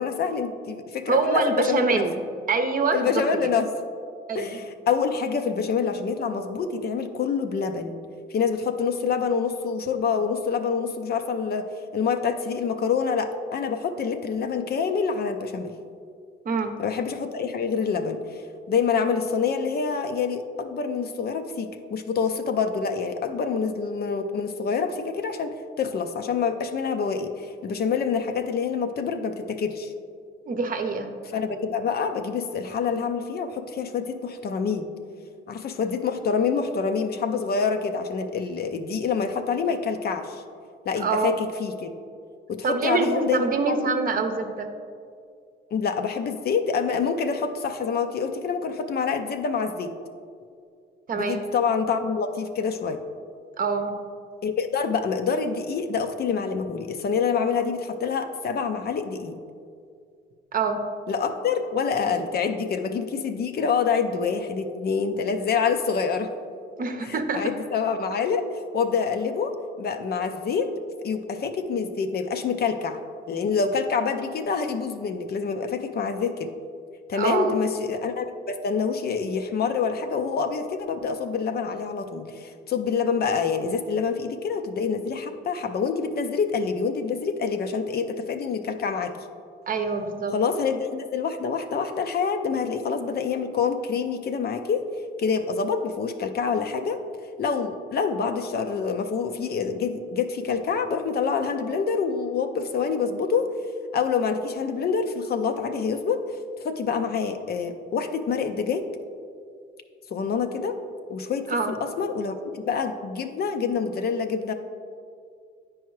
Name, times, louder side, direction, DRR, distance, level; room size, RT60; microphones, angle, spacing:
voice 1, 0.0-2.0 2.9-3.7 4.3-8.0 8.3-15.7 16.8-18.4 18.7-29.9 31.2-34.9 35.5-40.4 40.9-41.9 42.5-43.9 45.7-49.9 51.1-53.0 54.4-59.3 61.1-66.3 67.0-68.4 68.7-69.5 69.8-70.7 71.0-73.0 73.3-76.5 77.1-89.1 90.3-94.8 95.2-97.0 97.4-103.5 103.9-106.2 106.6-108.9 110.1-110.8 111.1-114.5, left 5 dB, 50° left, 7 dB, 0.5 m, -26 dB
voice 2, 1.1-2.2 2.5-3.2 4.3-4.6 16.4-16.7 30.5-31.1 41.0-41.3 42.6-44.7 51.1-51.4 53.6-54.0 60.5-60.8 66.8-67.5 77.1-77.5 89.7-90.3 111.5-111.7, right 4 dB, 45° right, 6 dB, 0.7 m, -25 dB
9.3 x 4.7 x 3.1 m, 2.2 s
cardioid pair, 90°, 20 cm